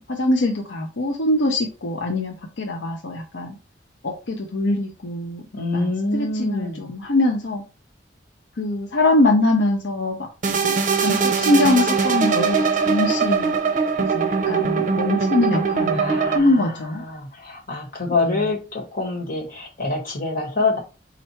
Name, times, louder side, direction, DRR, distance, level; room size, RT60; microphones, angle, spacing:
voice 1, 0.0-3.5 4.0-5.5 5.7-7.6 8.6-13.6 14.1-17.0 18.2-18.4, left 2 dB, 80° left, 0.7 m, -23 dB
voice 2, 5.5-6.9 15.9-20.8, left 3 dB, 50° left, 1.6 m, -26 dB
sound 1, 10.4-16.4, right 5 dB, 45° right, 0.7 m, -21 dB
4.4 x 2.6 x 4.4 m
head